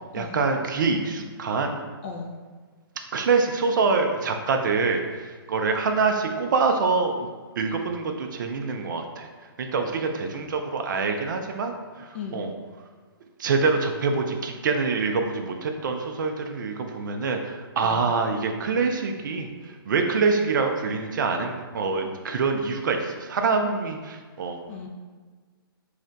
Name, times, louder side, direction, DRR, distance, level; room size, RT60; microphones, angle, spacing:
voice 1, 0.1-1.8 3.1-7.3 7.6-9.3 9.6-12.5 13.4-24.6, right 4 dB, 55° right, 4 dB, 0.4 m, -25 dB
voice 2, 2.0-2.3 12.1-12.4 17.8-18.0 24.7-24.9, left 5 dB, 30° left, 1 dB, 0.3 m, -36 dB
2.4 x 2.1 x 3.8 m, 1.5 s
hypercardioid pair, 155°, 13 cm